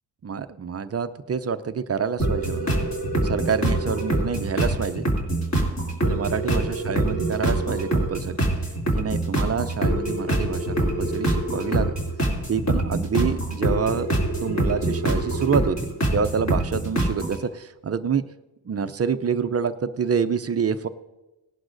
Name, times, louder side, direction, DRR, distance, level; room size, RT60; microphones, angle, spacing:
voice 1, 0.2-2.7 3.2-5.1 6.0-8.4 9.0-11.9 12.5-14.1 14.4-18.2 18.6-20.9, right 6 dB, 30° right, 11 dB, 0.6 m, -27 dB
sound 1, 2.2-17.4, right 1 dB, 35° left, 2.9 m, -25 dB
19.0 x 11.0 x 2.6 m, 1.0 s
cardioid pair, 85°, 47 cm